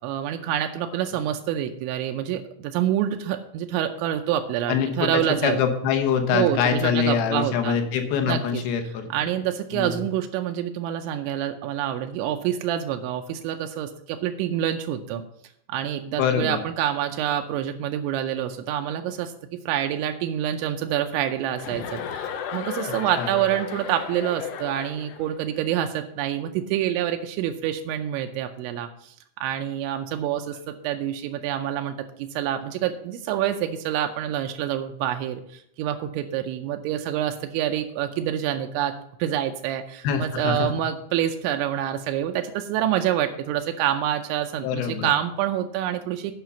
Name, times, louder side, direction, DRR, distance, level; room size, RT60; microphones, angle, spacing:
voice 1, 0.0-5.6 6.3-7.8 8.3-8.6 9.1-15.2 15.7-46.3, right 11 dB, 85° right, 5 dB, 3.0 m, -27 dB
voice 2, 4.7-9.1 9.7-10.0 16.2-16.6 23.1-23.3 40.0-40.7 44.6-45.1, left 7 dB, 70° left, 6 dB, 2.6 m, -24 dB
Chuckle chortle, 21.6-25.3, left 8 dB, 85° left, 3.4 m, -34 dB
9.1 x 5.6 x 6.9 m, 0.74 s
omnidirectional pair, 5.3 m